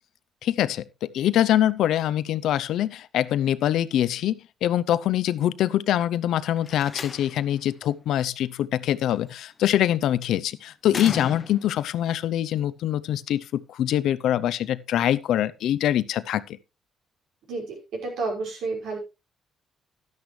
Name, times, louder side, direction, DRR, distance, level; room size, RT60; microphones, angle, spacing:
voice 1, 0.4-16.6, left 11 dB, 80° left, 0.6 m, -24 dB
Slam, 6.6-7.6 9.1-9.5 10.9-11.9, left 4 dB, 35° left, 0.8 m, -36 dB
voice 2, 17.5-19.0, right 3 dB, 80° right, 5.5 m, -30 dB
12.0 x 10.5 x 3.3 m
cardioid pair, 90°, 0 cm